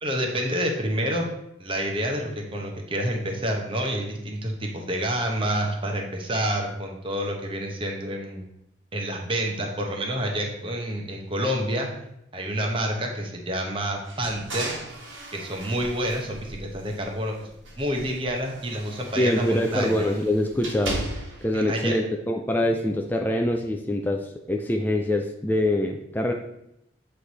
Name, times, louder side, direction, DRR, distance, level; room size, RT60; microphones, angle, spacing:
voice 1, 0.0-1.3 1.6-8.5 8.9-11.9 12.3-14.7 15.3-17.5 17.8-20.1 21.5-22.0, right 1 dB, 25° right, 2 dB, 0.9 m, -28 dB
sound 1, 14.0-17.2 17.6-21.5, right 2 dB, 85° right, 1.3 m, -37 dB
voice 2, 19.2-21.1 21.4-26.3, left 1 dB, 10° left, 2 dB, 0.3 m, -24 dB
7.7 x 3.3 x 4.0 m, 0.81 s
head